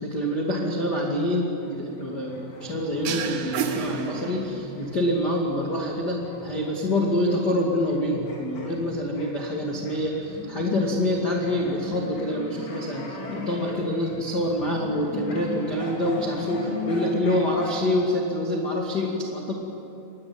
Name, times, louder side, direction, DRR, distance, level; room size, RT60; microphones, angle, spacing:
voice 1, 0.0-19.5, left 1 dB, 35° left, -1 dB, 1.6 m, -26 dB
sound 1, 1.6-8.0 8.2-17.8, left 2 dB, 85° left, 7.0 m, -38 dB
sound 2, 3.0-4.8, right 7 dB, 80° right, 4.1 m, -30 dB
25.5 x 20.0 x 9.6 m, 2.9 s
omnidirectional pair, 5.7 m